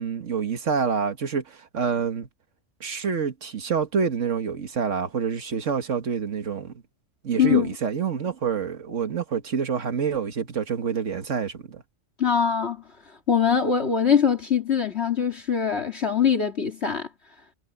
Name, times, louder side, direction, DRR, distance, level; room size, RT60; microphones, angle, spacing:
voice 1, 0.0-2.3 2.8-6.7 7.2-11.8, right 6 dB, 85° right, 1.9 m, -27 dB
voice 2, 7.4-7.7 12.2-17.1, left 7 dB, 60° left, 2.7 m, -23 dB
omnidirectional pair, 1.2 m